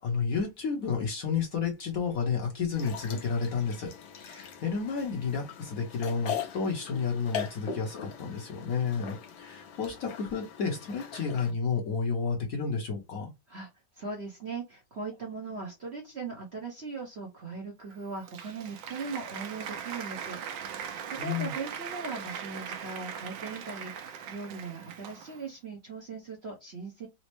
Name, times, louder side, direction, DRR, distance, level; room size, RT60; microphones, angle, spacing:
voice 1, 0.0-13.3 21.2-21.5, left 5 dB, 55° left, 1.1 m, -31 dB
sound 1, 2.7-11.5, left 8 dB, 85° left, 1.6 m, -41 dB
voice 2, 13.9-20.4 20.8-27.1, right 4 dB, 50° right, 0.9 m, -39 dB
Applause, 17.9-25.5, right 8 dB, 80° right, 1.3 m, -40 dB
4.2 x 2.0 x 3.0 m
omnidirectional pair, 2.0 m